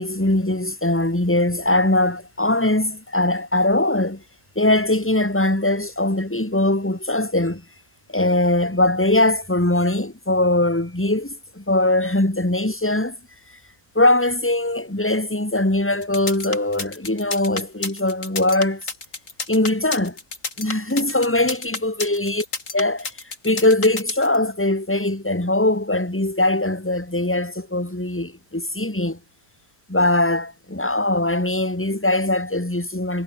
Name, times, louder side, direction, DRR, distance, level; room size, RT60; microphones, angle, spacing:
voice 1, 0.0-4.2 4.6-7.6 8.1-13.2 13.9-18.8 19.5-20.2 20.6-22.4 22.7-23.1 23.4-29.2 29.9-33.2, left 1 dB, 10° left, 2.6 m, -21 dB
sound 1, 16.0-24.4, left 3 dB, 55° left, 3.5 m, -30 dB
omnidirectional pair, 1.6 m